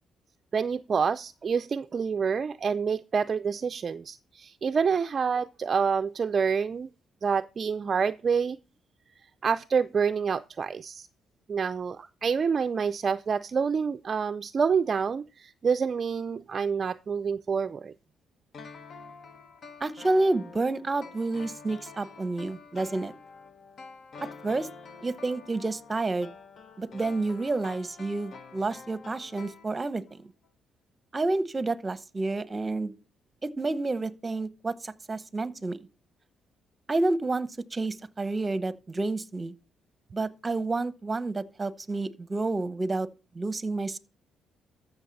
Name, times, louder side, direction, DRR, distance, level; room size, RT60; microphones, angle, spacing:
voice 1, 0.5-6.9 7.2-8.6 9.4-11.1 11.5-17.9, right 6 dB, 45° right, 0.4 m, -27 dB
sound 1, 18.5-30.2 30.4-30.5, left 5 dB, 55° left, 1.1 m, -47 dB
voice 2, 19.8-23.1 24.4-24.7 25.0-26.3 26.8-30.3 31.1-32.9 33.4-35.8 36.9-39.5 40.1-43.1 43.3-44.0, right 2 dB, 25° right, 0.8 m, -29 dB
13.5 x 6.4 x 4.0 m
cardioid pair, 90°, 0 cm